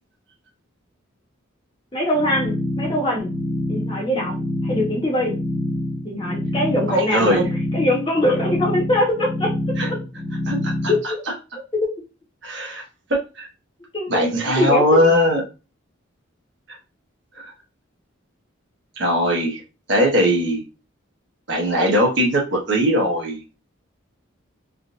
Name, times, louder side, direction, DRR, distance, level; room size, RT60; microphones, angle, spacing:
voice 1, 1.9-3.3 3.7-5.4 6.0-7.5 7.7-9.5 10.9-11.2 13.9-14.3 14.6-15.1, left 1 dB, 25° left, -3 dB, 1.1 m, -22 dB
sound 1, 2.1-11.0, left 1 dB, 20° right, 1.1 m, -27 dB
voice 2, 6.9-7.4 9.8-9.9 10.5-10.9 12.4-12.8 13.1-13.5 14.1-15.4 17.4-17.5 19.0-19.6 19.9-20.6 21.5-23.4, equal, 60° right, 0 dB, 1.1 m, -20 dB
3.7 x 2.6 x 2.4 m, 0.30 s
head